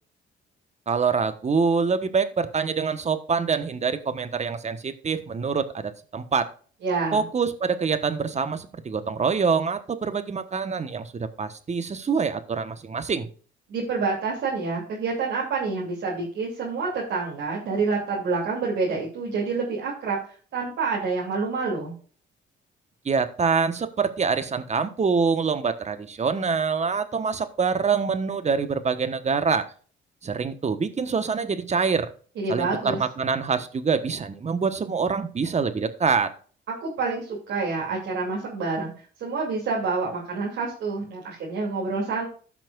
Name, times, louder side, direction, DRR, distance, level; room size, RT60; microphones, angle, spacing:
voice 1, 0.9-6.5 7.1-13.3 23.0-29.6 30.2-32.1 32.5-36.3, right 5 dB, 35° right, 11 dB, 1.2 m, -25 dB
voice 2, 6.8-7.2 13.7-20.2 20.5-21.9 32.4-33.0 36.7-38.9 39.2-42.3, right 4 dB, 75° right, -4 dB, 3.0 m, -27 dB
15.5 x 5.9 x 2.5 m, 0.41 s
cardioid pair, 90°, 20 cm